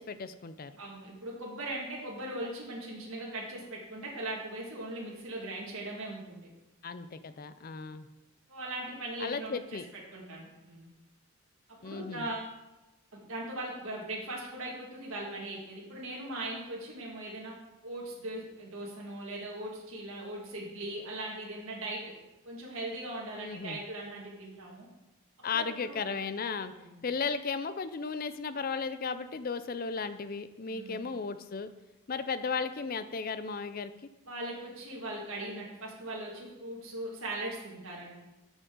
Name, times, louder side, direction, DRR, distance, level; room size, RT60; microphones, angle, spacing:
voice 1, 0.0-0.8 6.8-8.1 9.2-9.9 11.8-12.3 23.4-23.8 25.4-26.7 27.0-31.7 32.1-33.9, left 5 dB, 40° left, 12 dB, 0.4 m, -35 dB
voice 2, 0.8-6.5 8.5-9.8 10.1-10.9 11.7-12.5 13.1-17.6 17.8-22.1 22.4-24.9 25.5-26.0 26.6-27.1 30.7-31.0 34.3-38.1, right 1 dB, 65° right, -4 dB, 1.8 m, -39 dB
12.5 x 5.1 x 3.8 m, 1.0 s
head